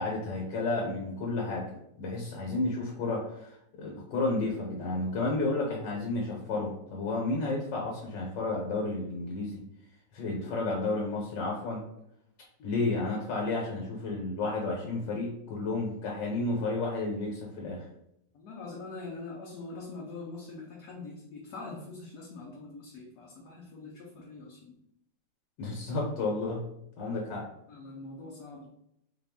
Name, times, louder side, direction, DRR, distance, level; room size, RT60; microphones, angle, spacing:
voice 1, 0.0-1.6 2.0-9.6 10.1-11.8 12.6-17.8 25.6-26.6 27.0-27.4, left 2 dB, 85° left, -2 dB, 1.6 m, -31 dB
voice 2, 18.3-24.8 27.7-28.7, left 3 dB, 65° left, -3 dB, 1.2 m, -43 dB
4.2 x 2.4 x 3.5 m, 0.78 s
omnidirectional pair, 1.9 m